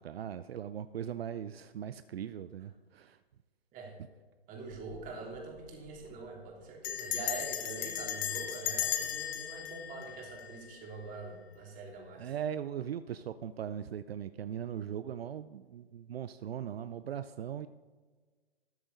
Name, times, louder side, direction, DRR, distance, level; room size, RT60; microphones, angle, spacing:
voice 1, 0.0-3.2 4.0-4.1 12.2-17.7, right 9 dB, 75° right, 13 dB, 0.5 m, -39 dB
voice 2, 4.5-12.3, right 3 dB, 25° right, 0 dB, 3.1 m, -44 dB
Bell, 4.7-5.1 5.4-5.5 5.7-6.1 6.8-10.9, left 11 dB, 30° left, 1.0 m, -36 dB
13.5 x 10.0 x 4.1 m, 1.4 s
hypercardioid pair, 125°, 31 cm